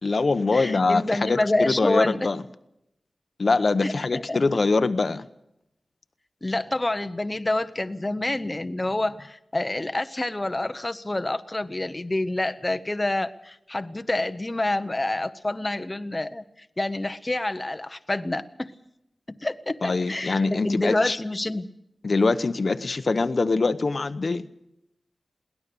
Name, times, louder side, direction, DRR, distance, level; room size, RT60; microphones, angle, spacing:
voice 1, 0.0-2.4 3.4-5.2 19.8-21.2 22.0-24.4, left 3 dB, 55° left, 0.8 m, -23 dB
voice 2, 0.5-2.3 3.8-4.4 6.4-16.4 16.8-18.7 19.4-21.7, left 2 dB, 25° left, 0.8 m, -27 dB
22.0 x 18.0 x 6.9 m
wide cardioid pair, 110°, 0 cm